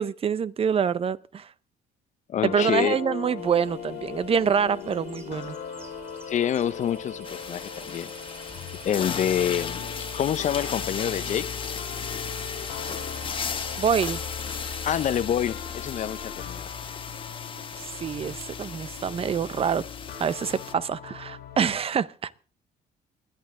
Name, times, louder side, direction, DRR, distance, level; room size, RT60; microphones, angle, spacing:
voice 1, 0.0-1.5 2.4-5.6 13.8-14.2 17.8-19.9 20.2-22.3, right 7 dB, 35° right, 0.6 m, -26 dB
voice 2, 2.3-3.0 6.3-8.1 8.8-9.9 10.1-11.5 14.8-16.7, left 9 dB, 45° left, 0.7 m, -27 dB
sound 1, 2.4-21.8, left 8 dB, 75° left, 2.1 m, -38 dB
sound 2, 3.4-15.2, right 3 dB, 15° right, 3.6 m, -48 dB
sound 3, 7.2-20.7, left 6 dB, 30° left, 1.1 m, -36 dB
20.5 x 11.5 x 3.7 m
cardioid pair, 110°, 17 cm